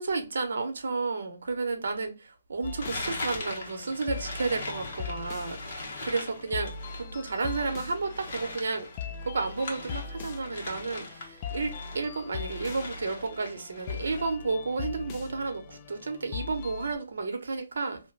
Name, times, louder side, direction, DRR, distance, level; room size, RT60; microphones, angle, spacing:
voice 1, 0.0-8.9 9.2-18.0, right 4 dB, 75° right, 0.8 m, -32 dB
sound 1, 2.6-16.9, left 5 dB, 25° left, 0.3 m, -40 dB
sound 2, 2.8-12.0 12.3-14.3, left 2 dB, 45° left, 1.0 m, -40 dB
2.8 x 2.1 x 3.1 m
hypercardioid pair, 165°, 0 cm